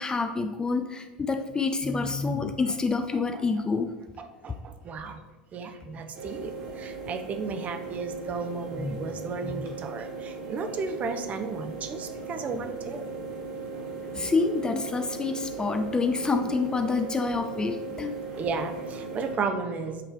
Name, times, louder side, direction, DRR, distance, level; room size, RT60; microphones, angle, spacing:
voice 1, 0.0-3.9 8.7-9.0 9.4-9.7 12.2-12.3 12.5-12.6 14.0-18.2, left 4 dB, 15° left, 7 dB, 0.4 m, -28 dB
voice 2, 4.2-5.2 5.5-6.5 6.8-13.1 18.4-20.0, right 4 dB, 30° right, 7 dB, 0.6 m, -34 dB
sound 1, 6.2-19.3, right 4 dB, 55° right, 1.8 m, -38 dB
8.6 x 3.2 x 3.7 m, 1.2 s
figure-of-eight pair, 80°, 5 cm